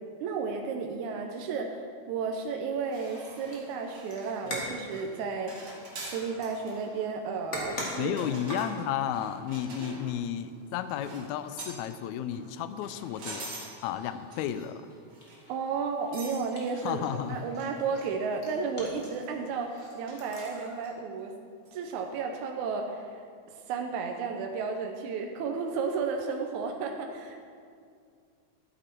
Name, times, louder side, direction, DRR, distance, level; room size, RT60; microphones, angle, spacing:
voice 1, 0.2-1.8 2.1-5.5 6.0-8.2 9.8-10.0 15.5-17.0 17.3-21.3 21.7-27.4, right 5 dB, 80° right, 3 dB, 2.1 m, -33 dB
sound 1, 2.7-20.9, equal, 30° left, 1.7 m, -45 dB
sound 2, 2.9-4.6 4.9-5.2 5.5-6.2 6.7-6.8 7.8-10.2 10.9-11.3 11.6-11.9 12.7-13.7 14.3-14.8 15.1-15.4 16.1-16.5 16.9-17.0 17.4-17.5 17.8-17.9 18.8-19.3 20.1-20.7 21.7-21.8, right 2 dB, 50° right, 2.9 m, -45 dB
voice 2, 8.0-13.5 13.8-14.8 16.8-17.5, left 10 dB, 80° left, 12 dB, 1.8 m, -33 dB
13.0 x 8.2 x 4.5 m, 2.2 s
omnidirectional pair, 3.4 m